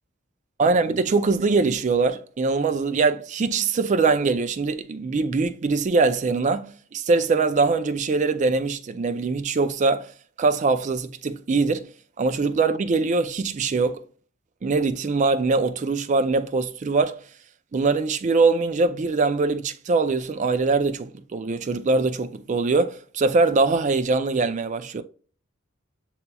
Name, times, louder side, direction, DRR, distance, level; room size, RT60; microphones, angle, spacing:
voice 1, 0.6-10.1 10.4-11.9 12.2-14.0 14.6-17.2 17.7-25.0, right 3 dB, 35° right, 0.4 m, -22 dB
7.9 x 2.9 x 2.2 m
head